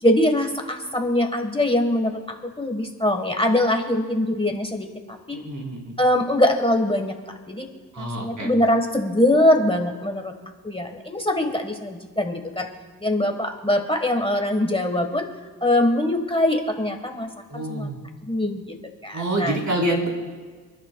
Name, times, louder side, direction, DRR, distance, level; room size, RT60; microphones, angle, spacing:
voice 1, 0.0-5.4 6.0-7.1 7.5-7.7 8.0-10.3 10.6-12.7 13.0-15.2 15.6-17.3 17.5-17.9 18.2-18.7 19.0-19.5, left 1 dB, 15° left, 3 dB, 1.3 m, -22 dB
voice 2, 5.3-6.0 7.9-8.5 17.5-18.0 19.1-20.1, right 1 dB, 50° right, -2 dB, 3.9 m, -27 dB
30.0 x 10.5 x 2.3 m, 1.5 s
cardioid pair, 55°, 38 cm